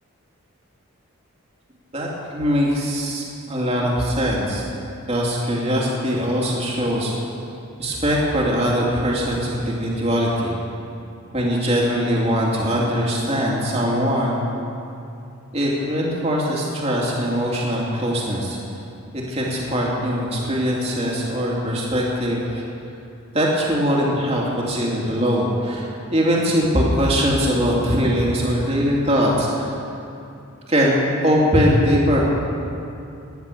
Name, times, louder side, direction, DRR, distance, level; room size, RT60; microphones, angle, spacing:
voice 1, 1.9-4.6 5.1-7.1 7.8-10.6 11.3-14.4 15.5-18.6 19.1-22.6 23.3-29.8 30.7-32.2, equal, 30° right, -3 dB, 2.9 m, -21 dB
19.0 x 11.0 x 6.9 m, 2.7 s
head